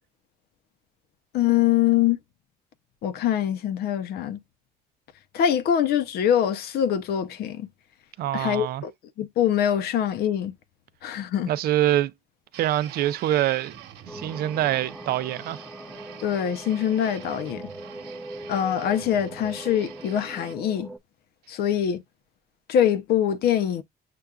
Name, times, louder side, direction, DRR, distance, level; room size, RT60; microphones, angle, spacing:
voice 1, 1.3-2.2 3.0-4.4 5.3-7.7 8.3-8.9 9.2-10.5 11.0-11.5 16.2-17.7 18.5-20.9 21.5-22.0 22.7-23.8, left 10 dB, 70° left, 0.7 m, -24 dB
voice 2, 8.2-8.8 11.5-12.1 12.6-13.7 14.1-15.6, right 13 dB, 65° right, 0.5 m, -25 dB
sound 1, 12.5-20.5, right 10 dB, 85° right, 1.1 m, -45 dB
sound 2, 14.1-21.0, right 1 dB, 5° left, 0.6 m, -41 dB
6.7 x 2.4 x 2.4 m
cardioid pair, 110°, 17 cm